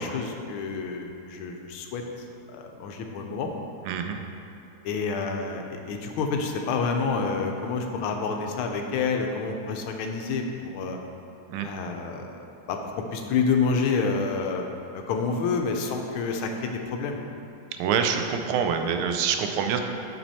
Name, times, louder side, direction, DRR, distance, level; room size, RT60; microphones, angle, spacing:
voice 1, 0.0-2.0 2.5-3.5 4.8-11.0 11.6-12.3 12.7-12.8 13.1-14.6 14.9-17.2, left 4 dB, 85° left, 3 dB, 1.5 m, -28 dB
voice 2, 3.8-4.2 11.5-11.7 17.8-19.8, right 7 dB, 85° right, 5 dB, 1.5 m, -26 dB
6.3 x 6.0 x 4.2 m, 2.7 s
omnidirectional pair, 2.2 m